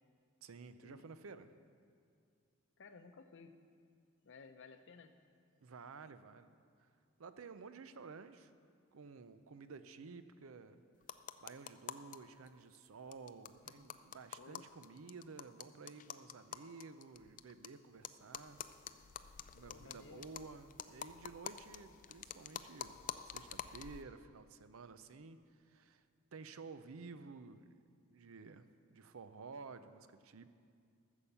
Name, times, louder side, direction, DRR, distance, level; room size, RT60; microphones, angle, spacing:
voice 1, 0.4-1.5 5.6-6.5 6.8-6.9 7.2-8.5 8.9-10.8 11.4-18.6 19.5-23.0 23.3-26.0 26.3-27.8 28.1-30.5, right 4 dB, 70° right, 12 dB, 0.6 m, -53 dB
voice 2, 2.8-3.6 4.2-5.2 13.6-14.7 19.7-20.3, left 4 dB, 60° left, 8 dB, 0.7 m, -57 dB
sound 1, 11.0-12.2 12.5-12.6 12.7-12.8 13.1-17.7 18.0-24.0, left 8 dB, 40° left, 0.4 m, -48 dB
13.0 x 7.2 x 6.8 m, 2.3 s
head